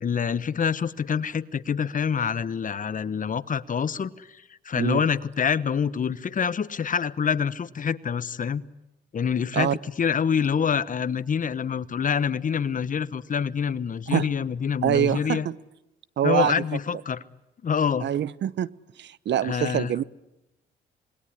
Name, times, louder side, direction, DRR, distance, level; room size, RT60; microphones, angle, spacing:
voice 1, 0.0-8.6 9.1-15.5 16.2-17.2 17.6-18.1 19.4-19.9, left 7 dB, 40° left, 1.1 m, -26 dB
voice 2, 14.8-15.6 16.2-16.5 18.0-18.7 19.0-20.0, right 10 dB, 65° right, 0.9 m, -24 dB
27.0 x 21.0 x 10.0 m
cardioid pair, 90°, 20 cm